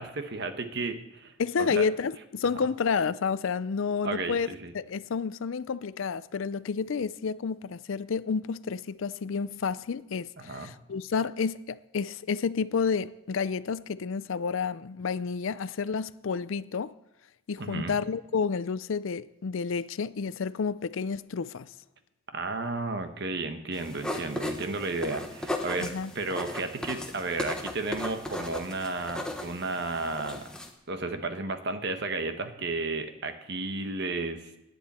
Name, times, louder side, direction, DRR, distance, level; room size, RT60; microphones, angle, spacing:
voice 1, 0.0-1.3 1.6-1.9 4.0-4.7 10.4-10.7 17.6-18.0 22.3-30.4 30.9-34.5, right 3 dB, 50° right, 1.1 m, -33 dB
voice 2, 1.4-4.5 4.7-16.9 17.5-21.7 25.8-26.1, left 5 dB, 65° left, 0.4 m, -30 dB
sound 1, 23.7-30.7, left 1 dB, 5° left, 1.1 m, -36 dB
18.0 x 9.9 x 4.3 m
head